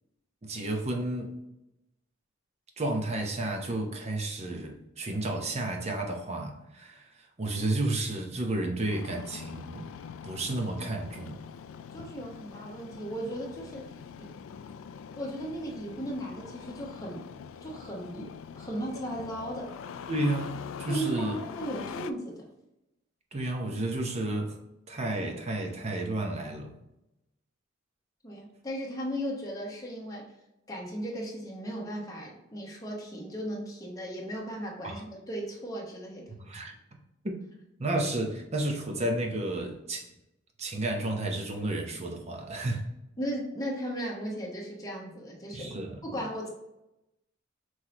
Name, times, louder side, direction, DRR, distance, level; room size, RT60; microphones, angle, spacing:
voice 1, 0.4-1.3 2.8-9.9 10.2-11.4 20.1-21.4 23.3-24.6 24.9-26.7 34.8-35.0 36.4-36.7 37.8-40.1 40.6-42.8 45.5-46.0, right 2 dB, 35° right, 2 dB, 0.7 m, -32 dB
Engine starting, 8.9-22.1, left 7 dB, 80° left, 0.3 m, -43 dB
voice 2, 11.9-14.3 15.1-17.2 17.6-18.3 18.5-19.7 20.9-22.5 28.2-30.3 30.7-36.3 43.2-45.7 46.0-46.5, right 1 dB, 20° left, -2 dB, 1.1 m, -36 dB
5.7 x 3.2 x 2.9 m, 0.91 s
head